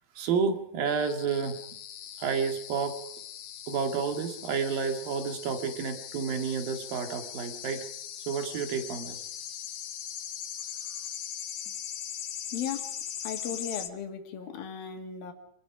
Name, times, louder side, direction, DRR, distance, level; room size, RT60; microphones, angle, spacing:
voice 1, 0.2-1.6 2.2-3.0 3.7-7.9 8.3-9.2, right 6 dB, 80° right, 6 dB, 4.0 m, -30 dB
sound 1, 0.9-13.9, left 10 dB, 60° left, 2.1 m, -40 dB
voice 2, 12.5-12.9 13.2-15.3, left 8 dB, 90° left, 5 dB, 4.0 m, -36 dB
26.5 x 21.0 x 5.0 m, 0.69 s
omnidirectional pair, 4.0 m